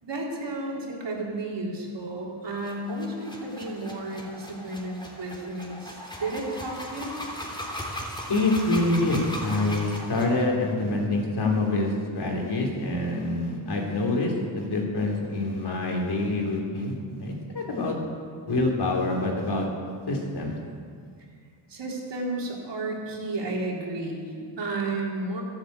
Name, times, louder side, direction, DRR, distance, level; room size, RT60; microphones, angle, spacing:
voice 1, 0.0-7.2 21.7-25.4, right 2 dB, 60° right, -2 dB, 3.9 m, -32 dB
sound 1, 2.6-10.4, equal, 10° left, 3.5 m, -38 dB
voice 2, 8.3-17.9 18.5-19.7 20.1-20.6, left 2 dB, 55° left, 0 dB, 3.8 m, -26 dB
13.0 x 10.5 x 8.2 m, 2.1 s
cardioid pair, 75°, 49 cm